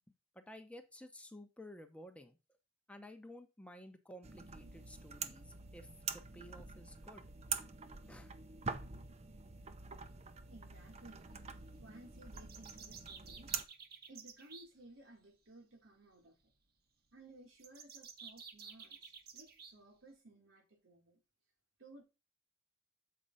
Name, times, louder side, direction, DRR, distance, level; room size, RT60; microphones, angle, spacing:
voice 1, 0.3-2.4 2.9-7.7 8.1-8.3, left 1 dB, 5° left, 0.8 m, -54 dB
sound 1, 4.2-13.6, right 6 dB, 35° right, 0.6 m, -45 dB
voice 2, 10.5-11.3 11.5-13.5 14.1-16.5 17.1-21.2 21.8-22.0, right 1 dB, 85° right, 2.8 m, -58 dB
sound 2, 12.3-14.7 17.6-19.7, right 6 dB, 55° right, 1.1 m, -53 dB
7.6 x 4.6 x 4.0 m
head